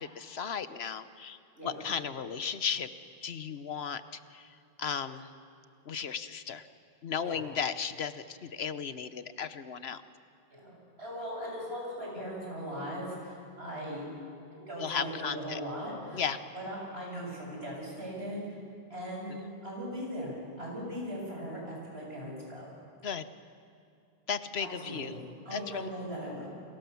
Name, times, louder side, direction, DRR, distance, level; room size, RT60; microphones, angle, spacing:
voice 1, 0.0-1.4 1.6-2.9 3.2-5.3 5.9-6.7 7.0-10.0 14.8-15.6 16.1-16.4 19.3-19.4 23.0-23.3 24.3-25.2 25.5-25.9, left 7 dB, 85° left, 12 dB, 1.2 m, -35 dB
voice 2, 10.5-14.1 14.5-16.3 16.5-18.4 18.9-22.7 24.6-26.5, equal, 80° right, -2 dB, 8.1 m, -39 dB
29.5 x 25.0 x 7.1 m, 2.5 s
omnidirectional pair, 1.0 m